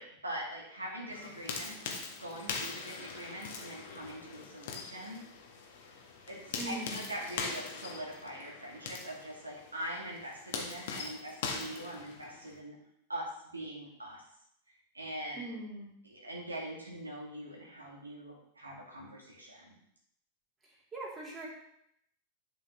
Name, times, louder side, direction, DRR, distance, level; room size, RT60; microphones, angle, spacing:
voice 1, 0.0-1.8 2.2-5.2 6.3-12.8 13.1-14.2 14.9-15.4 16.0-19.8, right 1 dB, 80° right, -2 dB, 1.8 m, -43 dB
sound 1, 1.1-12.6, left 5 dB, 55° left, 1.3 m, -42 dB
voice 2, 6.6-7.0 15.4-15.9 20.9-21.5, right 2 dB, 20° right, -3 dB, 2.5 m, -40 dB
10.0 x 5.5 x 3.0 m, 0.73 s
figure-of-eight pair, 90°, 0 cm